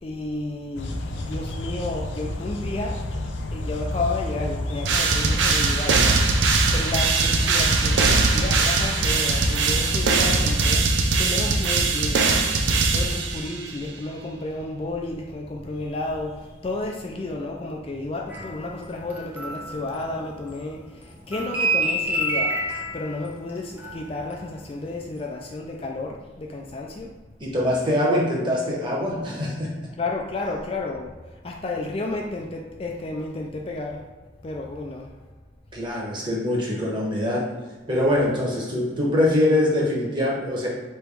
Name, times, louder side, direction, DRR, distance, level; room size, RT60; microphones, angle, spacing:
voice 1, 0.0-3.0 3.5-6.3 6.7-22.6 22.9-27.1 30.0-31.1 31.4-34.0 34.4-35.1, left 2 dB, 30° left, 0 dB, 0.3 m, -32 dB
sound 1, 0.7-10.7, left 1 dB, 85° left, 0.5 m, -31 dB
sound 2, 4.9-13.7, right 3 dB, 80° right, 0.5 m, -21 dB
sound 3, 18.3-20.7 21.0-24.6 24.9-25.2, right 1 dB, 10° right, 0.7 m, -29 dB
voice 2, 27.4-29.7 35.7-37.5 37.9-40.7, left 1 dB, 25° right, -4 dB, 1.1 m, -23 dB
3.3 x 3.0 x 4.7 m, 1.3 s
head